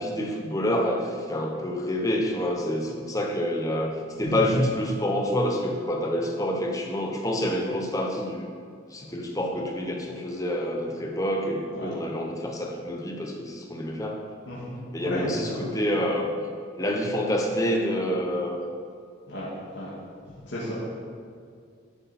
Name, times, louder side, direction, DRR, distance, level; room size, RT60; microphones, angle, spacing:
voice 1, 0.0-3.9 4.2-8.5 8.9-14.2 14.9-16.3 16.8-18.6, equal, 15° left, 1 dB, 1.0 m, -27 dB
voice 2, 14.5-15.8 19.3-19.5 19.7-19.9 20.5-20.7, equal, 65° left, -8 dB, 2.1 m, -33 dB
11.0 x 7.7 x 4.3 m, 2.2 s
head